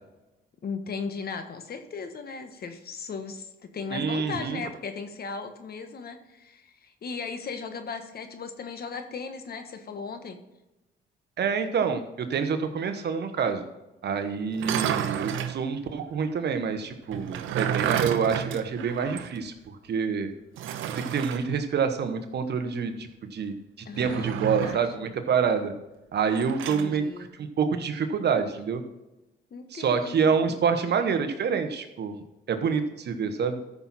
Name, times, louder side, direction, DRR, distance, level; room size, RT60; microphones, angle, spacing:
voice 1, 0.6-10.4 23.8-24.9 26.7-27.3 29.5-30.6, left 5 dB, 50° left, 7 dB, 1.4 m, -37 dB
voice 2, 3.9-4.6 11.4-13.6 14.0-20.3 20.9-23.5 24.0-25.7 26.1-27.1 27.4-28.8 29.7-32.2 32.5-33.6, right 6 dB, 55° right, 8 dB, 1.2 m, -27 dB
sound 1, 14.5-15.6 17.1-19.4 19.7-19.8 20.6-21.4 23.9-24.9 26.3-26.9, right 10 dB, 85° right, 0.8 m, -31 dB
13.5 x 6.1 x 4.3 m, 0.98 s
cardioid pair, 90°, 20 cm